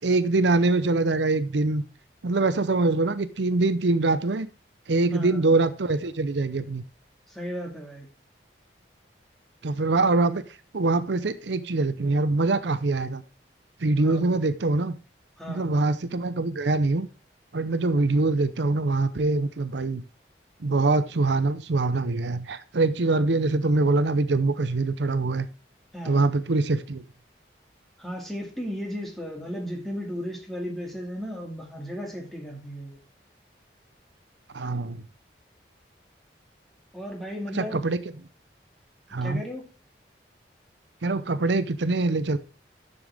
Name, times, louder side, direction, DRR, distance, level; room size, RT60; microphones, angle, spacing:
voice 1, 0.0-1.8 2.2-4.5 4.9-6.8 9.6-10.4 10.7-13.2 13.8-15.0 15.5-17.1 17.5-20.0 20.6-25.5 26.0-27.0 34.5-35.0 37.5-38.0 39.1-39.4 41.0-42.4, right 3 dB, 75° right, 0.7 m, -24 dB
voice 2, 5.1-5.4 7.3-8.1 14.0-14.4 15.4-15.8 25.9-26.4 28.0-33.0 36.9-37.8 39.2-39.7, equal, ahead, 2.2 m, -35 dB
10.5 x 6.9 x 3.5 m
head